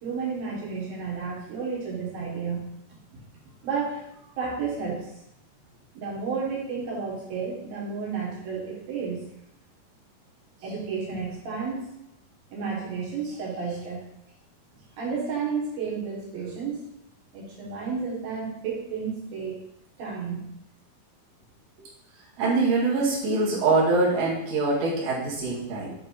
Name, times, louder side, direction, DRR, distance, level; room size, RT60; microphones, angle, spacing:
voice 1, 0.0-3.0 3.6-4.1 4.4-5.2 5.9-9.3 10.6-11.9 12.5-14.1 15.0-16.8 17.3-19.6 20.0-20.4, right 5 dB, 75° right, -4 dB, 3.5 m, -32 dB
voice 2, 22.4-25.9, right 3 dB, 50° right, -6 dB, 2.7 m, -24 dB
9.0 x 3.5 x 4.7 m, 0.80 s
omnidirectional pair, 4.2 m